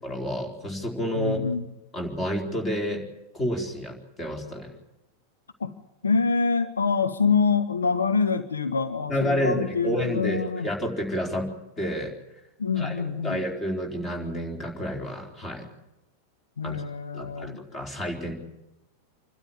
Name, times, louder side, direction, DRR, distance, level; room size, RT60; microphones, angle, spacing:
voice 1, 0.0-1.4 1.9-3.0 3.3-4.7 9.1-11.5 11.8-12.1 12.8-12.9 13.2-15.7 16.6-16.8 17.1-18.3, equal, 20° left, 1 dB, 4.3 m, -29 dB
voice 2, 1.1-1.6 5.6-5.8 6.0-10.7 12.6-13.4 16.6-17.6, left 5 dB, 75° left, 9 dB, 0.9 m, -25 dB
27.0 x 12.5 x 9.1 m, 0.96 s
figure-of-eight pair, 90°, 0 cm